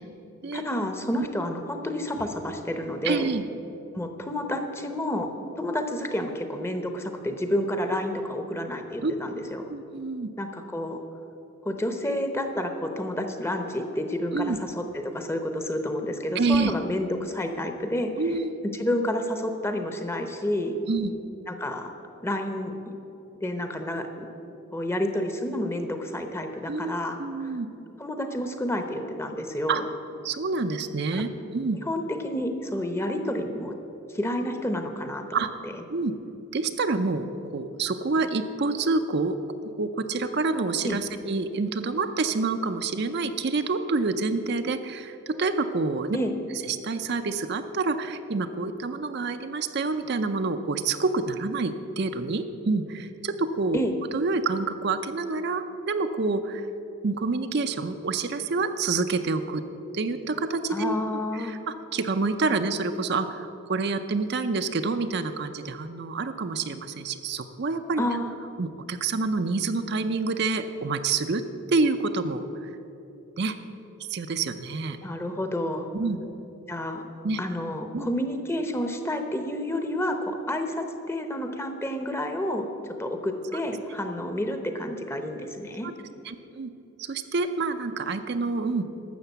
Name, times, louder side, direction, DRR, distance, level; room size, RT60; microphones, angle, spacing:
voice 1, 0.5-3.3 3.9-5.3 5.6-9.7 10.4-11.0 11.6-18.1 18.7-20.8 21.5-21.9 22.2-22.7 23.4-24.3 24.7-27.5 28.0-29.8 31.1-31.2 31.9-33.8 34.1-35.7 40.8-41.0 46.1-46.3 53.7-54.0 60.7-61.6 68.0-68.3 75.0-75.9 76.7-77.0 77.4-85.9, left 1 dB, 10° left, 6 dB, 0.8 m, -30 dB
voice 2, 3.0-3.4 9.0-9.1 9.7-10.3 14.3-14.6 16.4-16.7 18.2-18.6 20.9-21.1 26.7-26.9 27.2-27.7 29.7-29.8 30.2-31.8 35.3-35.5 35.9-36.1 36.5-37.3 37.5-39.4 39.6-46.2 46.6-53.8 54.1-56.7 57.0-59.6 59.9-61.0 61.3-68.0 68.6-71.4 71.7-72.7 73.4-73.6 74.1-75.0 75.9-76.2 77.2-77.4 77.9-78.1 85.8-85.9 86.2-86.7 87.0-88.8, right 3 dB, 50° right, 8 dB, 0.5 m, -27 dB
12.5 x 6.9 x 8.1 m, 2.9 s
head